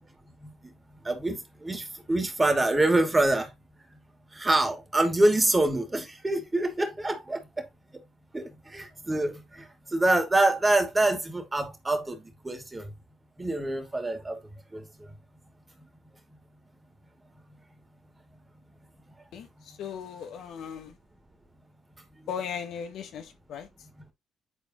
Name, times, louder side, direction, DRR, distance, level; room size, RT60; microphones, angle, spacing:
voice 1, 1.1-1.4 1.6-1.8 2.1-3.5 4.4-7.4 8.3-8.4 8.7-9.3 9.9-12.1 12.4-12.8 13.4-14.4, right 2 dB, 20° right, 2.6 m, -25 dB
voice 2, 19.3-21.0 22.3-23.7, left 7 dB, 65° left, 1.3 m, -37 dB
10.5 x 4.1 x 3.0 m
hypercardioid pair, 55°, 0 cm